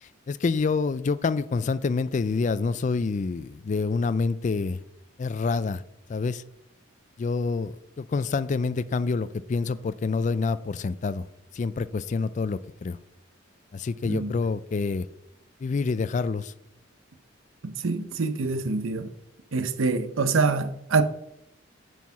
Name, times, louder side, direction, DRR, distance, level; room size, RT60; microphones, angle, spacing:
voice 1, 0.3-4.8 5.2-5.8 6.1-6.4 7.2-11.3 11.5-13.0 13.7-15.1 15.6-16.5, left 4 dB, 40° left, 0.3 m, -27 dB
voice 2, 17.6-19.1 19.5-21.0, right 4 dB, 85° right, 0.7 m, -25 dB
9.3 x 4.7 x 5.7 m
head